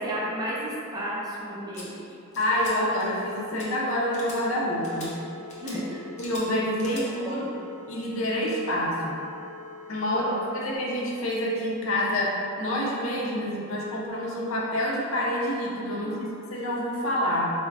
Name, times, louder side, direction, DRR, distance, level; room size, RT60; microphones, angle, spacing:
voice 1, 0.0-2.0 5.6-6.0 7.2-7.7 10.1-10.4 16.0-16.3, equal, 20° right, -5 dB, 0.4 m, -33 dB
sound 1, 1.7-1.8 2.3-2.7 3.0-3.3 3.6-3.7 4.1-4.4 4.8-5.1 5.5-5.8 6.2-6.4 6.8-7.0, left 2 dB, 35° left, 0.6 m, -43 dB
voice 2, 2.4-5.2 6.2-7.4 7.9-9.2 9.9-10.3 10.5-17.5, left 1 dB, 90° left, -3 dB, 0.6 m, -27 dB
sound 2, 3.0-10.8, left 4 dB, 5° left, 1.0 m, -45 dB
4.4 x 2.1 x 2.4 m, 2.6 s
head